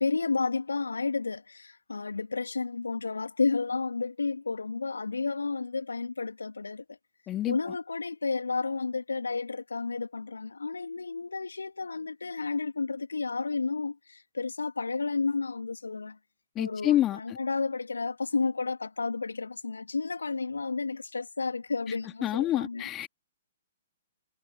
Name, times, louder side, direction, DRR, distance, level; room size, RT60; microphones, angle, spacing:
voice 1, 0.0-7.0 7.5-16.2 16.6-23.1, left 4 dB, 75° left, 2.8 m, -31 dB
voice 2, 7.3-7.6 16.5-17.4 22.2-23.1, left 13 dB, 20° left, 3.1 m, -27 dB
figure-of-eight pair, 120°, 0 cm